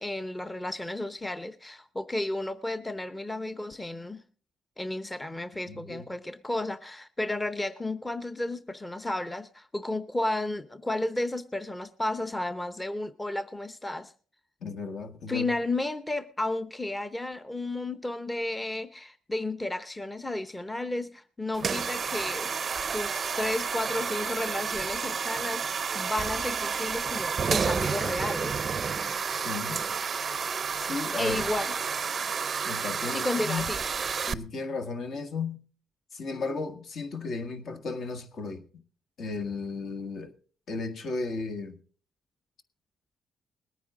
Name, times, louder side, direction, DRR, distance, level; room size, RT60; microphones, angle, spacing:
voice 1, 0.0-4.2 4.8-14.1 15.3-22.5 22.9-28.6 30.7-31.7 33.1-33.8, left 2 dB, 15° left, 0.7 m, -33 dB
voice 2, 5.7-6.1 14.6-15.6 29.3-29.8 30.8-31.5 32.6-33.7 34.3-35.6 36.1-38.6 39.2-40.3 40.7-41.8, left 4 dB, 60° left, 1.6 m, -35 dB
sound 1, 21.5-34.3, right 6 dB, 45° right, 0.5 m, -30 dB
20.5 x 9.3 x 3.8 m
cardioid pair, 90°, 0 cm